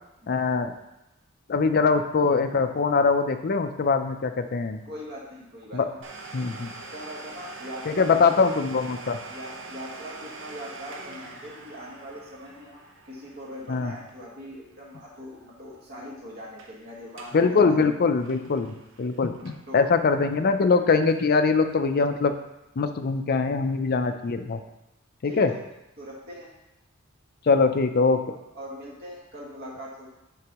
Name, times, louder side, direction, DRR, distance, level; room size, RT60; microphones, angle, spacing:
voice 1, 0.3-0.7 1.5-4.8 5.7-5.9 6.3-6.7 7.9-9.2 13.7-13.9 17.3-22.3 22.8-24.6 25.2-25.5 27.5-28.2, left 4 dB, 50° left, 8 dB, 0.5 m, -22 dB
voice 2, 4.8-5.8 6.9-8.3 9.0-17.7 19.7-20.0 24.0-24.1 25.2-25.6 26.0-26.5 28.3-30.1, equal, 50° right, -4 dB, 1.6 m, -41 dB
Domestic sounds home sounds, 6.0-15.5 15.7-15.8 16.4-16.7 17.1-17.4 17.8-19.8 20.3-20.4 21.1-21.2, right 3 dB, 65° right, 0.8 m, -44 dB
9.5 x 4.0 x 2.9 m, 0.91 s
head